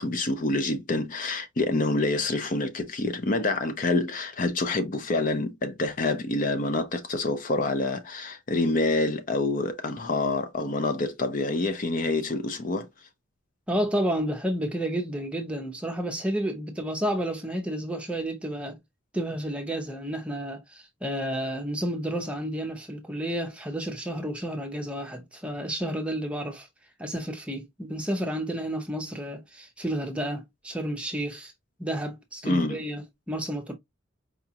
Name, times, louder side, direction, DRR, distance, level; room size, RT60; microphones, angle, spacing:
voice 1, 0.0-12.9 32.4-32.8, left 2 dB, 40° left, 0.5 m, -27 dB
voice 2, 13.7-18.8 19.1-26.7 27.0-31.5 31.8-33.7, right 1 dB, 5° right, 0.7 m, -31 dB
4.8 x 2.4 x 2.8 m
head